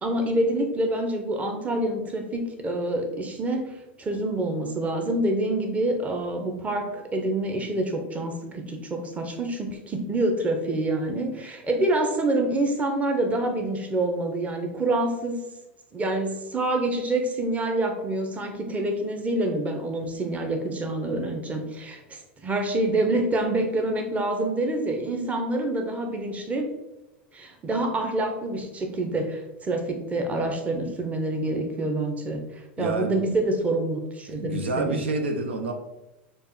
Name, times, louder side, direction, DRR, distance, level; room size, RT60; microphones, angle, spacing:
voice 1, 0.0-3.7 4.0-15.4 15.9-26.7 27.3-35.0, right 2 dB, 20° right, 4 dB, 0.8 m, -27 dB
voice 2, 32.8-33.2 34.3-35.7, right 3 dB, 80° right, 5 dB, 0.5 m, -28 dB
6.5 x 2.5 x 3.1 m, 0.96 s
hypercardioid pair, 85°, 6 cm